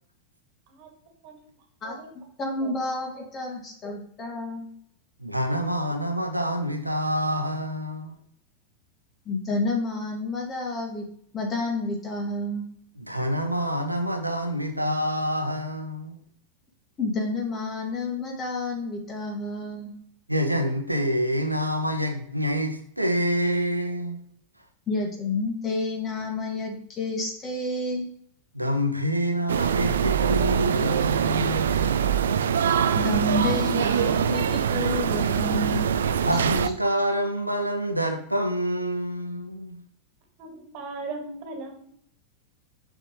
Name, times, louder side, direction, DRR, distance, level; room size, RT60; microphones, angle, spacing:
voice 1, 1.2-2.1 2.6-2.7 3.0-3.5 40.4-41.9, right 3 dB, 45° right, 1.9 m, -39 dB
voice 2, 2.4-4.7 9.3-11.0 11.3-12.6 17.0-19.9 24.9-28.1 32.9-35.9 36.3-36.4, left 2 dB, 25° left, 2.1 m, -30 dB
voice 3, 5.2-8.2 13.0-16.2 20.3-24.2 28.5-31.9 36.2-39.8, equal, 85° right, 0.9 m, -27 dB
sound 1, 29.5-36.7, right 7 dB, 65° right, 0.4 m, -23 dB
6.6 x 6.4 x 3.1 m
figure-of-eight pair, 90°, 0 cm